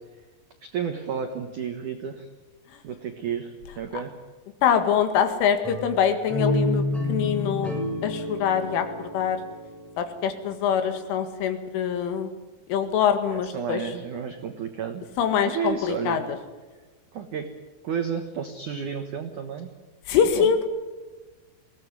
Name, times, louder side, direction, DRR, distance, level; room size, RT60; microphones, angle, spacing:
voice 1, 0.6-2.3 2.8-4.1 13.3-15.0 15.5-16.2 17.1-17.5 17.8-19.7 20.3-20.5, right 7 dB, 80° right, 6 dB, 1.7 m, -31 dB
voice 2, 4.6-7.8 8.0-9.4 10.0-12.3 12.7-13.8 15.2-16.4 20.1-20.7, left 8 dB, 75° left, 8 dB, 4.3 m, -24 dB
sound 1, 5.6-10.5, left 2 dB, ahead, 6.3 m, -29 dB
22.0 x 17.5 x 9.6 m, 1.2 s
omnidirectional pair, 5.8 m